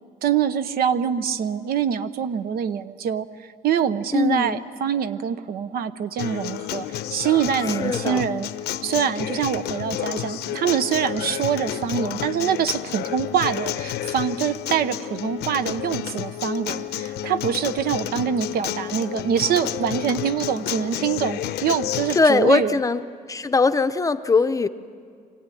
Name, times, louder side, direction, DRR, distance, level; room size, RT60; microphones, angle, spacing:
voice 1, 0.2-8.5 8.8-22.7, right 8 dB, 65° right, 12 dB, 0.9 m, -25 dB
voice 2, 4.1-4.6 7.6-8.3 22.1-23.0 23.3-24.7, left 4 dB, 20° left, 10 dB, 0.7 m, -21 dB
Acoustic guitar, 6.2-22.2, left 12 dB, 75° left, 0.9 m, -30 dB
25.0 x 16.0 x 10.0 m, 2.2 s
cardioid pair, 110°, 17 cm